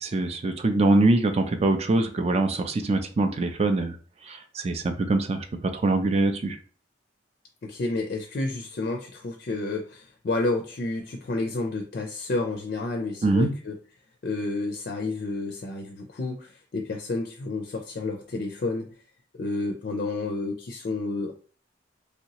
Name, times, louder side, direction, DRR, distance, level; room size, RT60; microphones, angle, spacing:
voice 1, 0.0-4.0 4.2-6.6 13.2-13.5, right 2 dB, 35° right, 7 dB, 0.4 m, -23 dB
voice 2, 7.6-13.7 14.2-18.9 19.4-21.3, left 2 dB, 55° left, 3 dB, 0.4 m, -30 dB
3.1 x 2.8 x 2.9 m, 0.42 s
head